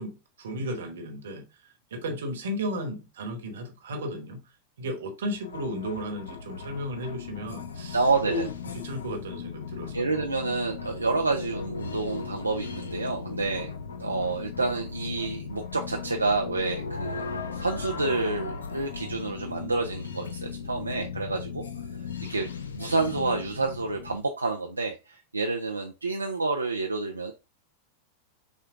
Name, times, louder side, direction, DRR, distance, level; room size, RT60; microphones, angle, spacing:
voice 1, 0.0-4.4 4.8-10.2, equal, 60° right, 1.1 m, -34 dB
sound 1, 5.3-24.2, left 5 dB, 70° left, 0.6 m, -37 dB
voice 2, 7.9-8.5 9.9-13.7 14.0-21.6 22.3-22.5 22.7-27.3, right 3 dB, 80° right, 0.5 m, -29 dB
6.3 x 2.2 x 3.6 m
figure-of-eight pair, 90°, 0 cm